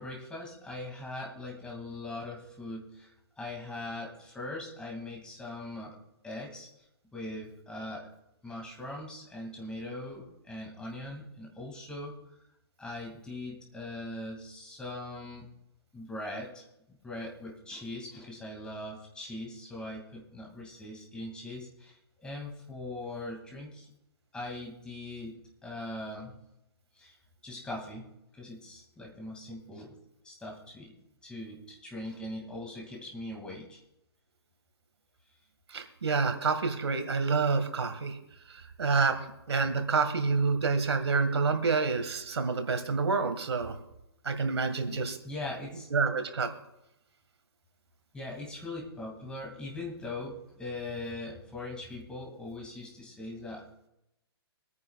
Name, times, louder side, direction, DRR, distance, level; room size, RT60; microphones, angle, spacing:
voice 1, 0.0-6.0 6.2-6.7 7.1-8.1 8.4-12.2 12.8-15.5 15.9-23.9 24.3-26.3 27.0-27.1 27.4-28.1 28.3-29.9 30.2-30.9 31.2-33.8 44.9-45.9 48.1-53.6, left 2 dB, 5° left, -1 dB, 2.4 m, -41 dB
voice 2, 35.7-38.2 38.8-39.2 39.5-43.7 44.3-45.2 45.9-46.5, right 4 dB, 80° right, 7 dB, 1.9 m, -28 dB
24.5 x 9.6 x 2.4 m, 0.87 s
hypercardioid pair, 150°, 14 cm